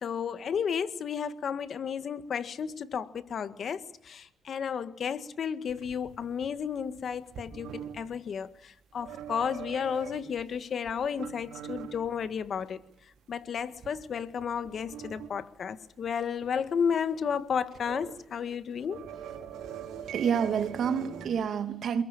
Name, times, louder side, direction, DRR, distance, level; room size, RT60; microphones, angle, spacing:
voice 1, 0.0-12.8 13.3-19.1, left 7 dB, 60° left, 1.8 m, -33 dB
sound 1, 5.7-8.0 8.9-10.4 10.8-12.6 13.0-13.1 13.6-15.3 15.7-15.8 16.0-16.1 16.4-16.7 17.6-18.1 18.4-21.3, right 9 dB, 85° right, 4.6 m, -43 dB
voice 2, 20.1-22.0, right 7 dB, 65° right, 2.6 m, -28 dB
28.5 x 22.0 x 7.3 m
cardioid pair, 90°, 0 cm